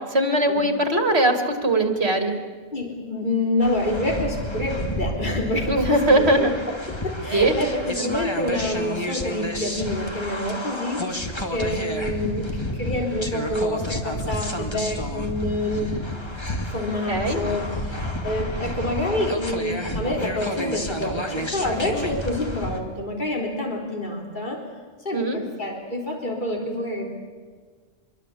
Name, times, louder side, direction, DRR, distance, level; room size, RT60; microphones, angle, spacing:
voice 1, 0.0-2.4 5.7-6.5 7.3-7.5 17.1-17.4 25.1-25.4, right 1 dB, 55° right, 6 dB, 2.9 m, -20 dB
voice 2, 2.7-6.5 6.9-16.0 16.7-24.6 25.0-27.1, left 1 dB, 40° left, 1 dB, 4.2 m, -27 dB
sound 1, 3.6-22.8, left 1 dB, 20° left, 2.2 m, -30 dB
25.5 x 23.0 x 8.6 m, 1.5 s
omnidirectional pair, 1.3 m